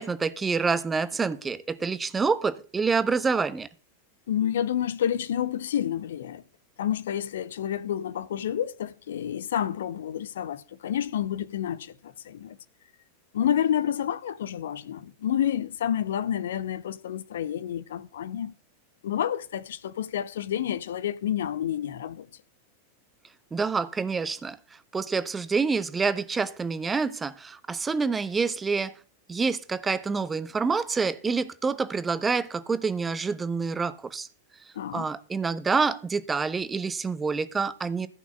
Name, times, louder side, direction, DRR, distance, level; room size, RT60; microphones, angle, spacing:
voice 1, 0.0-3.7 23.5-24.6 24.9-28.9 29.3-34.3 34.9-38.1, right 4 dB, 15° right, 1.1 m, -27 dB
voice 2, 4.3-6.4 6.8-12.6 13.3-18.5 19.0-22.3 34.7-35.1, left 10 dB, 60° left, 0.8 m, -29 dB
15.0 x 6.2 x 7.2 m
figure-of-eight pair, 90°, 0 cm